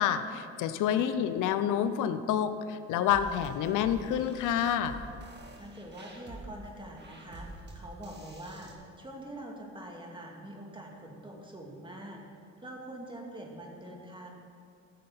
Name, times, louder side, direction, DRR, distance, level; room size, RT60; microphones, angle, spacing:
voice 1, 0.0-5.0, left 9 dB, 90° left, 10 dB, 0.6 m, -28 dB
sound 1, 3.1-8.7, right 1 dB, 35° right, 1.8 m, -47 dB
voice 2, 5.5-12.2 12.6-14.3, right 1 dB, 15° right, 0 dB, 2.2 m, -44 dB
14.0 x 6.5 x 5.7 m, 2.4 s
cardioid pair, 90°, 30 cm